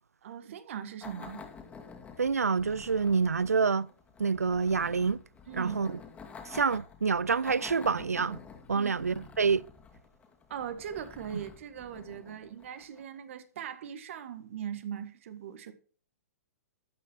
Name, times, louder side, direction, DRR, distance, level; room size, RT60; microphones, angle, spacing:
voice 1, 0.2-1.4 5.5-5.8 8.7-8.9 10.5-15.7, right 9 dB, 60° right, 1.7 m, -40 dB
sound 1, 1.0-13.2, left 5 dB, 15° left, 2.4 m, -50 dB
voice 2, 2.2-3.9 4.2-5.2 5.5-6.0 6.5-8.4 8.7-9.6, right 5 dB, 85° right, 0.4 m, -27 dB
13.0 x 8.7 x 4.5 m
figure-of-eight pair, 115°, 8 cm